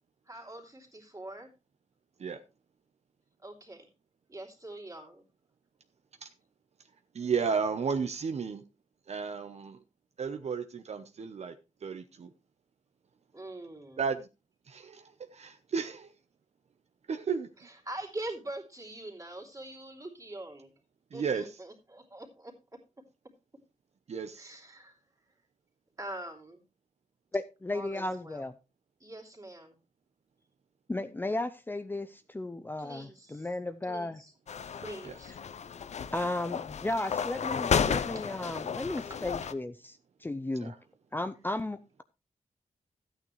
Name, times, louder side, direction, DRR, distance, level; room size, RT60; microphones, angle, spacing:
voice 1, 0.3-1.5 3.4-3.9 4.3-5.2 13.3-14.0 17.6-20.7 21.1-22.5 24.4-25.0 26.0-26.6 27.7-28.4 29.0-29.8 32.8-33.5 33.8-34.3 34.8-35.4 36.9-37.1 38.1-38.2 38.5-38.6 39.1-39.2, right 1 dB, 25° right, 3.2 m, -44 dB
voice 2, 7.1-8.6 9.1-9.8 10.2-11.5 11.8-12.3 14.0-14.3 14.7-15.1 15.7-16.0 17.1-17.5 21.1-21.6 24.1-24.6 35.0-35.2 40.6-40.8, right 6 dB, 60° right, 0.8 m, -33 dB
voice 3, 27.3-28.5 30.9-34.2 36.1-40.7 41.1-42.0, left 2 dB, 15° left, 0.6 m, -34 dB
sound 1, 34.5-39.5, left 7 dB, 60° left, 0.7 m, -33 dB
13.5 x 9.1 x 3.2 m
wide cardioid pair, 110°, 13 cm